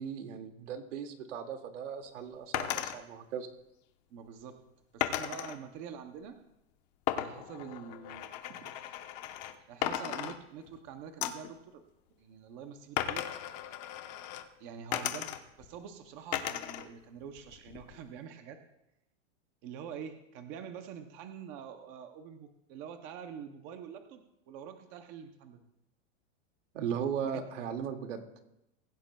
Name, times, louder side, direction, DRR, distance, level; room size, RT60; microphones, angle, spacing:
voice 1, 0.0-3.5 26.7-28.3, right 7 dB, 75° right, 5 dB, 2.1 m, -37 dB
sound 1, 2.5-3.0 5.0-5.6 7.1-9.5 9.8-10.8 11.2-11.5 13.0-14.4 14.9-15.7 16.3-16.9 17.2-18.0, left 12 dB, 35° left, 0.9 m, -36 dB
voice 2, 4.1-4.6 4.9-6.4 7.2-9.0 9.7-11.8 12.1-13.3 14.6-15.3 15.6-18.6 19.6-25.6 27.3-27.4, right 7 dB, 20° right, 7 dB, 0.5 m, -46 dB
23.5 x 15.5 x 2.2 m, 0.86 s
supercardioid pair, 175°, 37 cm